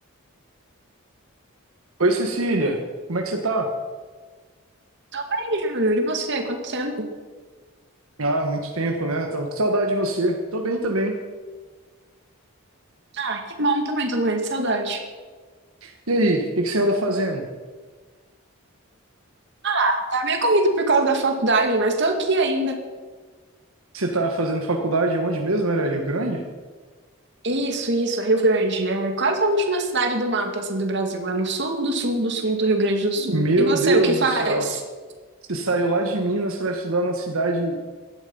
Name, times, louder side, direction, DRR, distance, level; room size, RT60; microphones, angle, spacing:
voice 1, 2.0-2.8 3.1-3.7 8.2-11.1 15.8-17.4 23.9-26.4 33.2-34.6 35.5-37.8, right 2 dB, 75° right, 2 dB, 1.5 m, -23 dB
voice 2, 5.1-7.1 13.1-15.0 19.6-22.8 27.4-34.8, right 2 dB, 55° right, 4 dB, 2.2 m, -23 dB
16.5 x 12.5 x 5.5 m, 1.4 s
head